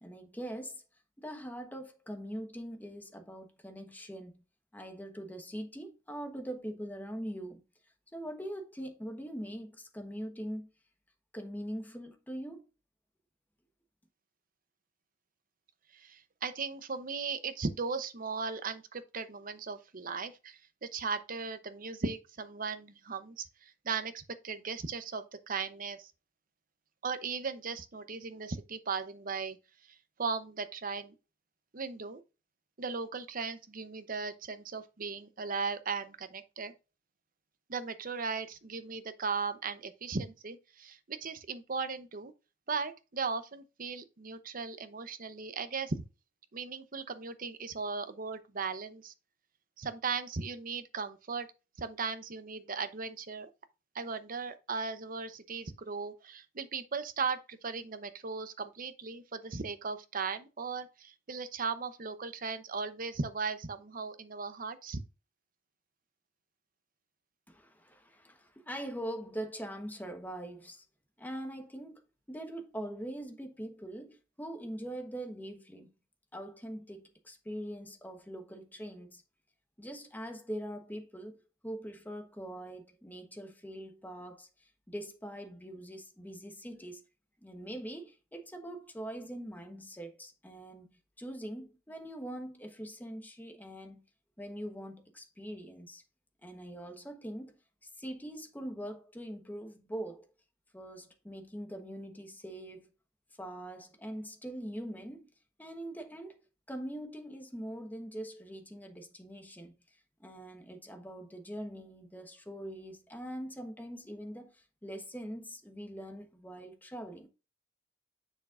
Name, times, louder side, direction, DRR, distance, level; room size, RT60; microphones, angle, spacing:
voice 1, 0.0-0.8 1.2-4.4 4.7-7.6 8.1-10.7 11.3-12.6 67.5-70.8 71.2-72.0 72.3-75.9 76.3-79.2 79.8-81.4 81.6-87.0 87.4-94.0 94.4-96.0 96.4-100.3 100.7-102.9 103.4-105.3 105.6-106.4 106.7-109.7 110.2-117.3, right 1 dB, 10° left, 1.1 m, -42 dB
voice 2, 15.9-26.1 27.0-29.6 29.8-31.1 31.7-32.2 32.8-36.7 37.7-42.3 42.7-46.0 46.5-49.1 49.8-51.5 51.8-53.5 53.9-65.0, right 5 dB, 45° right, 0.8 m, -37 dB
7.2 x 6.3 x 2.5 m
head